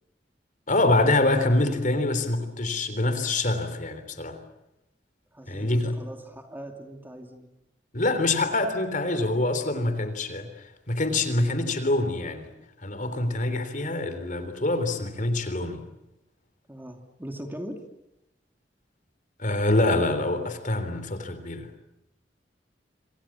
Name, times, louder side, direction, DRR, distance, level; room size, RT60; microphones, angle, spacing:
voice 1, 0.7-4.4 5.5-5.9 7.9-10.5 10.9-12.5 12.8-15.9 19.4-21.7, left 2 dB, 45° left, 10 dB, 3.6 m, -25 dB
voice 2, 5.3-7.5 16.7-17.8, right 1 dB, 10° right, 5 dB, 2.7 m, -40 dB
27.5 x 26.5 x 7.4 m, 0.89 s
head